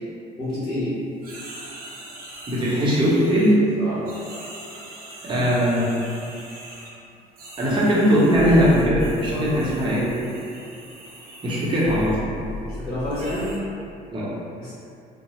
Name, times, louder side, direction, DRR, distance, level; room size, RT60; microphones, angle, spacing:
voice 1, 0.4-0.9 3.8-4.0 9.2-9.9 12.6-13.5 14.6-14.7, left 1 dB, 60° left, -13 dB, 1.1 m, -29 dB
sound 1, 1.2-3.7 4.0-6.9 7.4-12.2 13.1-13.6, right 1 dB, 60° right, 0.7 m, -42 dB
voice 2, 2.5-3.6 5.2-6.0 7.6-10.1 11.4-12.2 14.1-14.3, equal, 30° right, -7 dB, 0.8 m, -19 dB
sound 2, 8.3-10.2 11.8-13.8, left 1 dB, 45° left, 0.4 m, -35 dB
2.8 x 2.0 x 3.1 m, 2.6 s
cardioid pair, 110°, 17 cm